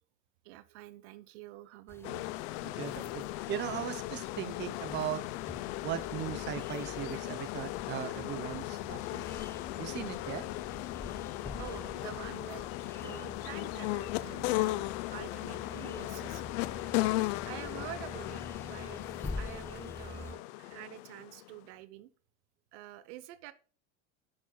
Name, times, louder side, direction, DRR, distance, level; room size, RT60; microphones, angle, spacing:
voice 1, 0.4-2.3 9.6-9.8 11.6-12.6 13.0-16.4 17.4-19.0 19.4-22.1 22.7-23.5, right 14 dB, 75° right, 15 dB, 0.8 m, -47 dB
sound 1, 1.9-20.3, left 3 dB, 5° left, 0.4 m, -47 dB
sound 2, 2.0-21.6, left 18 dB, 70° left, 0.5 m, -37 dB
voice 2, 2.6-5.2 5.8-9.4 9.7-10.4, right 11 dB, 30° right, 12 dB, 0.7 m, -38 dB
8.6 x 6.1 x 2.2 m, 0.39 s
supercardioid pair, 130°, 35 cm